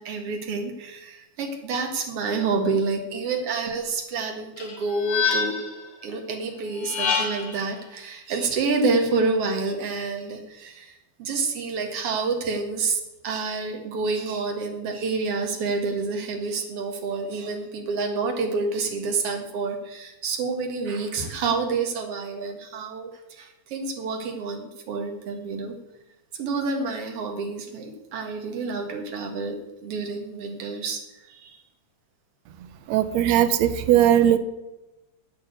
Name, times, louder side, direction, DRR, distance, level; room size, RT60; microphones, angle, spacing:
voice 1, 0.0-5.5 6.0-25.7 26.4-31.0 31.3-31.6, right 4 dB, 55° right, 4 dB, 2.5 m, -28 dB
sound 1, 4.6-5.8 6.7-7.6, left 6 dB, 60° left, 2.8 m, -26 dB
voice 2, 32.9-34.4, right 11 dB, 75° right, 12 dB, 1.8 m, -19 dB
8.8 x 8.7 x 8.1 m, 1.0 s
omnidirectional pair, 3.3 m